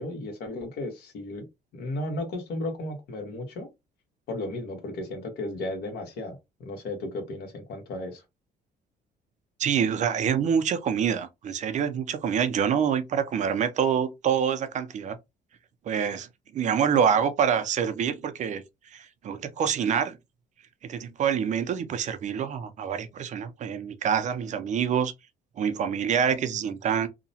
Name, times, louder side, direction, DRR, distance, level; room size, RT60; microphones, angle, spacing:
voice 1, 0.0-1.5 1.7-3.7 4.3-8.2, left 2 dB, 75° left, 1.2 m, -34 dB
voice 2, 9.6-15.2 15.9-16.3 16.5-18.6 18.9-20.2 20.8-25.1 25.6-27.1, right 7 dB, 45° right, 0.5 m, -26 dB
2.8 x 2.1 x 2.7 m
cardioid pair, 110°, 17 cm